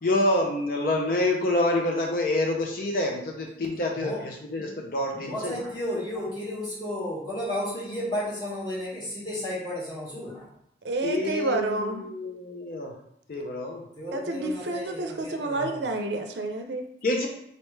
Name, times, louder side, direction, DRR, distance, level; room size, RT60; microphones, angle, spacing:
voice 1, 0.0-5.5 11.0-12.9 13.3-13.9 17.0-17.3, left 1 dB, 50° left, 1 dB, 0.5 m, -27 dB
voice 2, 5.1-10.5 14.0-15.8, left 1 dB, 25° left, -8 dB, 1.7 m, -33 dB
voice 3, 10.8-12.0 14.1-16.8, right 2 dB, 75° right, 5 dB, 0.5 m, -29 dB
4.0 x 3.3 x 3.1 m, 0.75 s
head